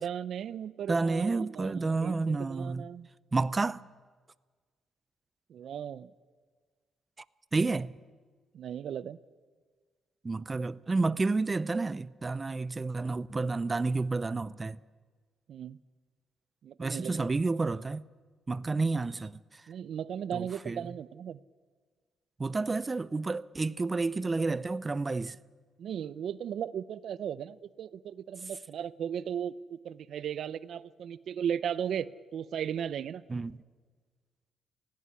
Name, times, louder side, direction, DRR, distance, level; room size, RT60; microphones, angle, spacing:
voice 1, 0.0-3.1 5.5-6.1 8.5-9.2 15.5-15.8 16.6-17.3 19.7-21.4 25.8-32.1 32.3-33.2, right 8 dB, 65° right, 0.6 m, -36 dB
voice 2, 0.9-2.8 3.3-3.8 7.5-7.9 10.2-14.8 16.8-18.0 18.5-19.3 20.3-20.8 22.4-25.4 33.3-33.5, right 3 dB, 25° right, 0.6 m, -30 dB
17.5 x 16.5 x 9.6 m
cardioid pair, 90°, 0 cm